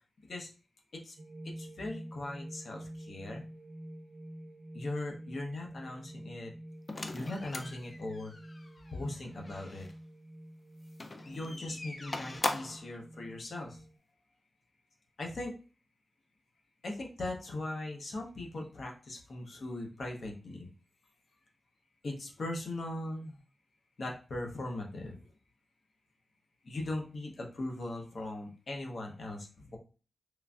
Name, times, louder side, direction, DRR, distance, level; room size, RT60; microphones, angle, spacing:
sound 1, 1.2-14.0, right 1 dB, 55° right, 0.4 m, -49 dB
voice 1, 1.4-3.4 4.7-6.5 7.1-8.3 8.9-9.9 11.2-13.8 15.2-15.5 16.8-20.7 22.0-23.4 24.0-25.2 26.6-29.8, left 2 dB, 60° left, 1 dB, 0.7 m, -39 dB
sound 2, 6.9-9.9 10.9-12.9, left 2 dB, 35° left, 0.3 m, -40 dB
3.1 x 2.4 x 2.3 m, 0.35 s
wide cardioid pair, 95°, 0 cm